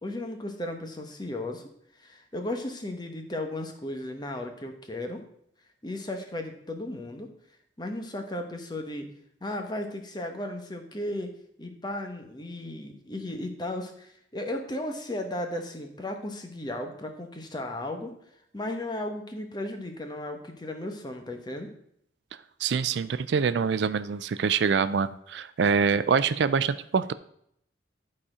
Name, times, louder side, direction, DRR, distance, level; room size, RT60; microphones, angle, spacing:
voice 1, 0.0-1.7 2.0-5.2 5.8-7.3 7.8-9.1 9.4-11.3 11.6-18.1 18.5-21.7, left 1 dB, 25° left, 5 dB, 1.0 m, -35 dB
voice 2, 22.6-27.1, right 6 dB, 75° right, 14 dB, 0.4 m, -25 dB
11.5 x 4.3 x 4.9 m, 0.70 s
head